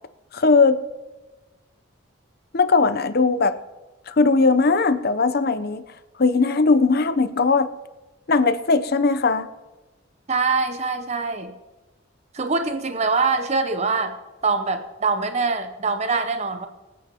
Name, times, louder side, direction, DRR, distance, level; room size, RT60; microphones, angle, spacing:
voice 1, 0.3-0.8 2.5-3.6 4.1-5.8 6.2-7.7 8.3-9.5, left 4 dB, 50° left, 11 dB, 0.6 m, -19 dB
voice 2, 10.3-11.5 12.3-14.1 14.4-16.7, right 4 dB, 30° right, 7 dB, 0.6 m, -23 dB
25.0 x 8.5 x 2.9 m, 1.2 s
head